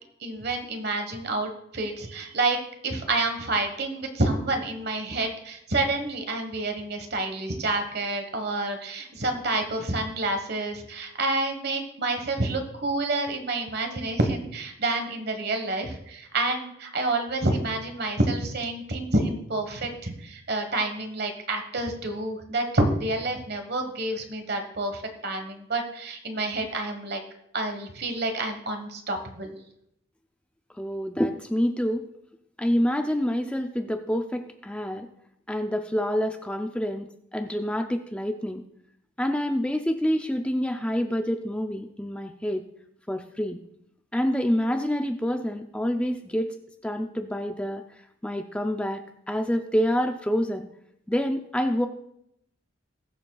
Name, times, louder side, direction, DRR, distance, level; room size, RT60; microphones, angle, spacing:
voice 1, 0.2-2.6 2.8-27.2 27.5-29.6, right 2 dB, 50° right, 5 dB, 1.3 m, -28 dB
voice 2, 30.8-32.1 32.6-35.1 35.5-37.1 37.3-38.6 39.2-42.6 43.1-43.6 44.1-46.6 46.8-47.8 48.2-50.7 51.1-51.9, equal, 5° left, 5 dB, 0.4 m, -27 dB
21.0 x 7.1 x 2.3 m, 0.77 s
head